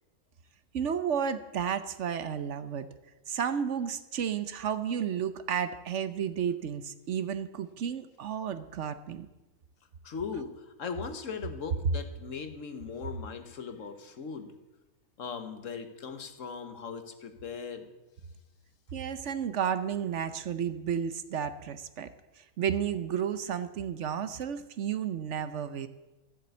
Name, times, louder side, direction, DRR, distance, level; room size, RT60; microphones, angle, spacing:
voice 1, 0.7-2.9 3.3-9.3 18.9-25.9, right 8 dB, 60° right, 12 dB, 0.9 m, -32 dB
voice 2, 10.0-14.6 15.2-17.9, left 5 dB, 60° left, 8 dB, 1.4 m, -39 dB
13.5 x 7.7 x 8.1 m, 1.1 s
omnidirectional pair, 1.6 m